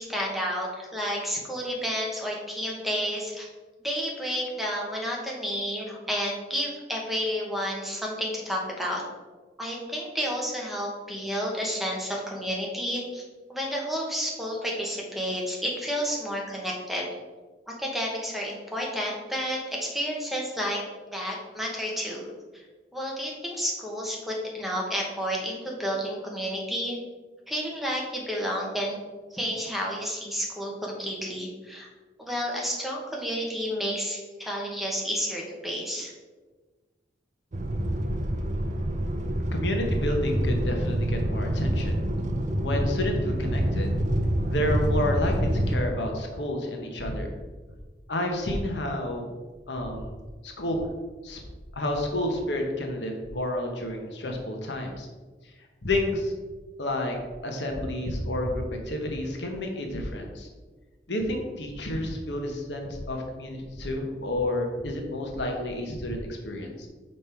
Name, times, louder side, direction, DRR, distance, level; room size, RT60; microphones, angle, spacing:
voice 1, 0.0-3.5 3.8-9.0 9.6-13.2 13.5-17.1 17.7-20.8 21.1-22.3 22.5-22.6 22.9-27.0 27.5-29.0 29.3-31.9 32.2-36.1, equal, ahead, -2 dB, 1.2 m, -31 dB
sound 1, 37.5-45.8, right 1 dB, 45° right, 0.6 m, -27 dB
voice 2, 39.5-42.0 42.6-44.0 44.5-47.3 48.1-49.2 49.7-50.1 50.4-50.8 51.2-51.4 51.7-55.1 55.8-56.3 56.8-57.2 57.4-60.5 61.1-66.9, left 1 dB, 75° left, 2 dB, 1.1 m, -30 dB
5.5 x 5.2 x 4.5 m, 1.3 s
head